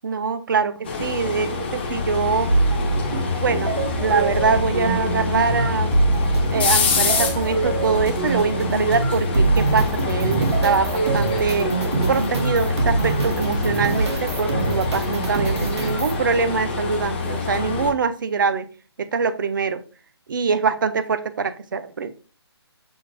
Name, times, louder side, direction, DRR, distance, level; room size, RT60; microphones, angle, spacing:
voice 1, 0.0-2.5 3.4-5.9 6.5-11.7 12.1-18.7 19.0-19.8 20.3-22.1, right 5 dB, 50° right, 0.4 m, -23 dB
sound 1, 0.8-17.9, left 5 dB, 25° left, 0.5 m, -26 dB
sound 2, 2.5-16.2, right 3 dB, 80° right, 1.2 m, -24 dB
6.1 x 2.5 x 3.0 m
hypercardioid pair, 170°, 14 cm